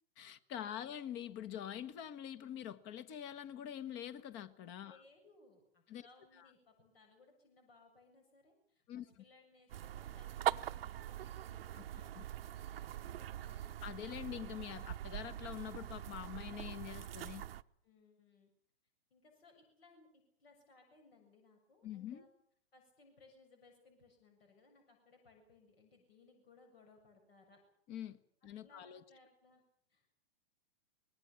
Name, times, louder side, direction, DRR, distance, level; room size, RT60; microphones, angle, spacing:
voice 1, 0.2-5.0 5.9-6.1 6.4-6.5 8.9-9.2 11.7-11.8 12.1-12.2 13.8-17.5 21.8-22.2 27.9-29.0, left 10 dB, 35° left, 1.6 m, -45 dB
voice 2, 4.8-12.2 12.5-13.8 17.8-18.5 19.1-22.3 22.7-27.6 28.6-29.6 29.9-30.1, left 3 dB, 70° left, 7.2 m, -65 dB
sound 1, 9.7-17.6, right 12 dB, 70° right, 0.9 m, -42 dB
25.0 x 21.0 x 7.1 m
hypercardioid pair, 115°, 31 cm